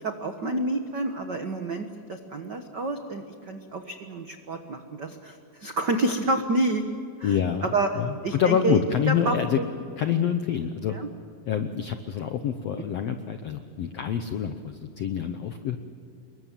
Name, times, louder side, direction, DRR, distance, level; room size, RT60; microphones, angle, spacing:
voice 1, 0.0-6.8 7.2-7.3 7.6-7.9 8.2-8.8 9.1-9.7 10.9-11.1 12.8-12.9, right 2 dB, 80° right, 6 dB, 0.9 m, -28 dB
voice 2, 7.2-7.7 8.0-10.9 11.5-15.8, left 8 dB, 80° left, 8 dB, 1.4 m, -27 dB
27.5 x 22.5 x 7.5 m, 2.5 s
omnidirectional pair, 4.2 m